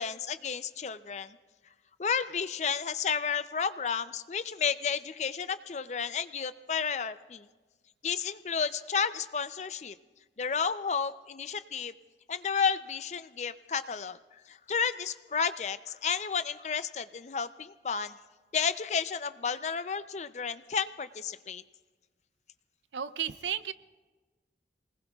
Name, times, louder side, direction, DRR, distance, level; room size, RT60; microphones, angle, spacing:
voice 1, 0.0-1.4 2.0-7.5 8.0-10.0 10.4-11.9 12.3-14.2 14.5-18.2 18.5-21.6, left 6 dB, 40° left, 13 dB, 0.4 m, -32 dB
voice 2, 22.9-23.7, right 9 dB, 90° right, 14 dB, 0.5 m, -33 dB
27.5 x 19.5 x 2.3 m, 1.3 s
head